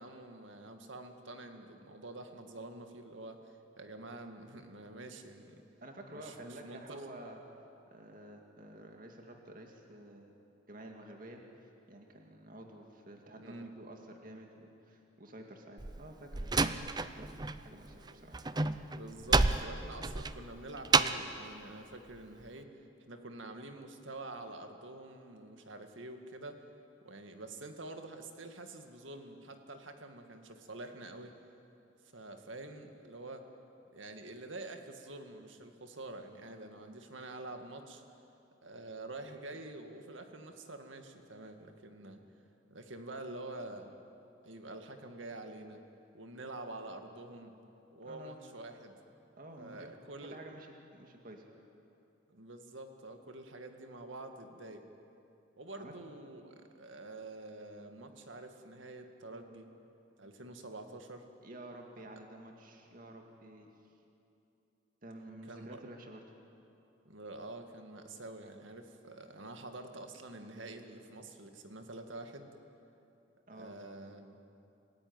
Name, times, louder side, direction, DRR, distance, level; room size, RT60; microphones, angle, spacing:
voice 1, 0.0-5.6 6.1-7.0 13.4-13.7 18.0-18.3 18.8-22.7 23.1-26.6 27.0-31.3 32.1-33.5 33.9-38.0 38.6-42.2 42.7-43.9 44.4-45.8 46.1-47.5 47.9-49.0 49.6-50.4 52.3-54.8 55.6-59.7 60.2-61.3 65.5-65.8 67.0-72.5 73.5-74.4, right 2 dB, 80° right, 6 dB, 2.0 m, -47 dB
voice 2, 5.8-7.4 7.9-10.3 10.7-18.4 48.0-48.4 49.4-49.9 50.2-51.4 55.8-55.9 61.4-63.7 65.0-66.2 73.5-73.8, right 1 dB, 45° right, 2 dB, 2.2 m, -50 dB
Slam, 15.8-17.6 17.9-21.3, right 3 dB, 20° right, 0.6 m, -30 dB
27.0 x 16.0 x 9.6 m, 2.8 s
head